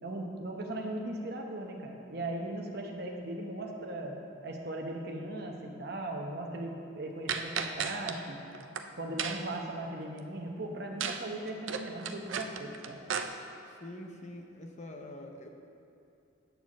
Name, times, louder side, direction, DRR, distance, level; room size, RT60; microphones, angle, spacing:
voice 1, 0.0-4.2 4.4-8.4 9.0-13.0, right 1 dB, 50° right, 1 dB, 1.0 m, -38 dB
sound 1, 7.3-8.2 8.5-8.8 9.2-9.6 11.0-11.2 11.5-13.2, right 7 dB, 75° right, 0.5 m, -34 dB
voice 2, 13.7-15.5, left 1 dB, 35° left, 3 dB, 0.7 m, -45 dB
9.3 x 4.4 x 7.2 m, 2.7 s
head